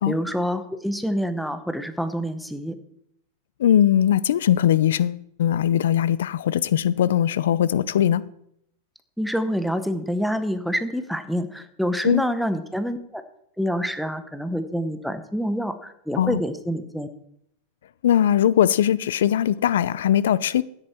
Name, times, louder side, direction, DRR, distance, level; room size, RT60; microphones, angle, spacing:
voice 1, 0.1-2.7 9.2-13.2 13.6-17.1, equal, ahead, 0.8 m, -27 dB
voice 2, 3.6-8.2 12.0-12.2 16.2-16.4 18.0-20.6, left 10 dB, 90° left, 0.5 m, -20 dB
13.0 x 10.0 x 4.4 m
supercardioid pair, 155°, 0 cm